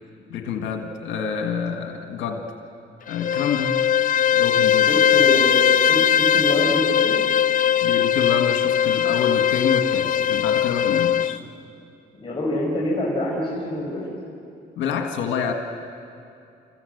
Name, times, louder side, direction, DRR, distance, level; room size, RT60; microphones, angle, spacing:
voice 1, 0.3-2.4 3.1-3.8 4.3-4.9 7.8-11.4 14.8-15.5, left 6 dB, 90° left, 4 dB, 1.6 m, -27 dB
Bowed string instrument, 3.1-11.4, left 9 dB, 45° left, 0.4 m, -20 dB
voice 2, 4.9-7.1 12.1-14.1, left 1 dB, 25° left, -5 dB, 5.2 m, -25 dB
27.5 x 15.0 x 7.9 m, 2.5 s
cardioid pair, 75°, 19 cm